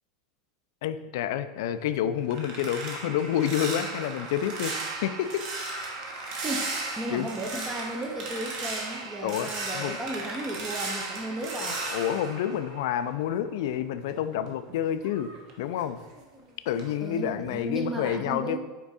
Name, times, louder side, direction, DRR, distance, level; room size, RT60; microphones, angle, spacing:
voice 1, 0.8-4.7 5.0-5.4 7.1-7.3 9.2-10.0 11.4-11.7 11.9-15.3 15.6-16.0 16.7-18.6, left 10 dB, 55° left, 11 dB, 0.4 m, -29 dB
sound 1, 1.8-13.4 13.7-16.4 16.7-17.1 17.4-17.7, right 3 dB, 35° right, 0.9 m, -36 dB
voice 2, 6.4-11.8 17.0-18.6, right 1 dB, 10° right, 1 dB, 0.5 m, -35 dB
6.0 x 4.5 x 4.1 m, 1.2 s
supercardioid pair, 180°, 2 cm